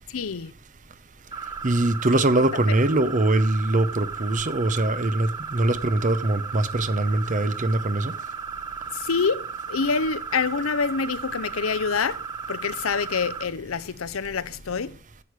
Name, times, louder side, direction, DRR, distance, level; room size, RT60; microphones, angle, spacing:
voice 1, 0.1-0.5 2.1-2.2 2.7-2.8 8.9-12.2 12.5-15.0, left 5 dB, 80° left, 0.7 m, -26 dB
sound 1, 1.3-13.4, right 6 dB, 20° right, 1.1 m, -35 dB
voice 2, 1.6-8.1, right 2 dB, 35° right, 0.8 m, -22 dB
11.0 x 8.3 x 4.8 m
head